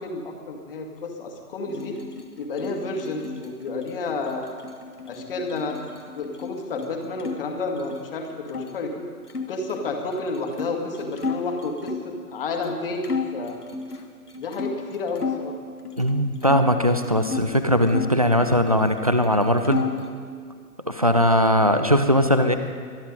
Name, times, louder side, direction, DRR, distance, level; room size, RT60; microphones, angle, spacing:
voice 1, 0.0-2.0 2.4-4.5 5.1-5.8 6.1-9.0 9.5-13.6 14.4-15.5, left 3 dB, 35° left, 3 dB, 2.0 m, -30 dB
sound 1, 1.7-7.4 7.7-8.7 9.3-12.2 12.6-12.8 13.0-15.5 15.8-17.5 17.9-19.0 19.2-20.1, left 5 dB, 75° left, 1.6 m, -34 dB
voice 2, 16.0-19.8 20.9-22.6, equal, 25° right, 8 dB, 0.4 m, -20 dB
24.0 x 10.0 x 5.4 m, 2.1 s
figure-of-eight pair, 130°, 46 cm